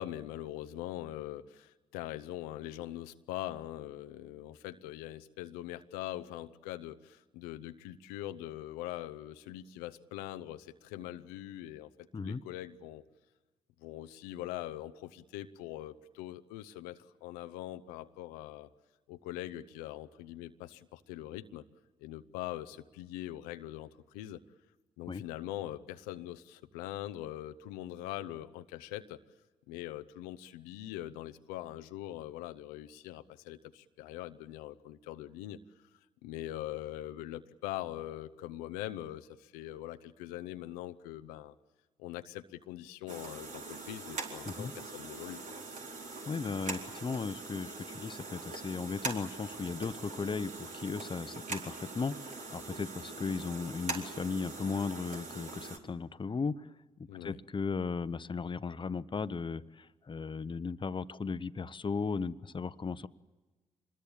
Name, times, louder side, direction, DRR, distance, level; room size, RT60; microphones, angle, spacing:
voice 1, 0.0-13.0 13.8-18.7 19.1-21.6 22.0-24.4 25.0-29.2 29.7-35.6 36.2-41.5 42.0-45.4 57.1-57.4, left 14 dB, 80° left, 9 dB, 0.7 m, -42 dB
sound 1, 43.1-55.8, right 3 dB, 55° right, 4.0 m, -42 dB
voice 2, 46.3-56.7 57.1-63.1, left 5 dB, 30° left, 14 dB, 0.9 m, -36 dB
26.5 x 21.0 x 8.7 m, 1.2 s
hypercardioid pair, 45°, 15 cm